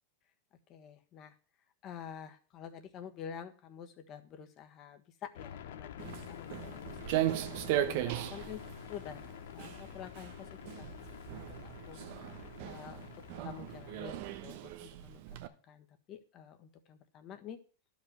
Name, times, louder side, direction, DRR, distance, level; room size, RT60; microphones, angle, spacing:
voice 1, 0.7-1.4 1.8-10.5 10.8-11.0 11.3-13.1 13.4-15.2 15.5-17.6, left 8 dB, 35° left, 7 dB, 1.5 m, -49 dB
sound 1, 5.3-14.2, left 10 dB, 80° left, 1.0 m, -48 dB
Walk footsteps, 6.0-15.5, right 13 dB, 60° right, 1.1 m, -38 dB
11.5 x 5.3 x 7.9 m, 0.40 s
supercardioid pair, 130°, 0 cm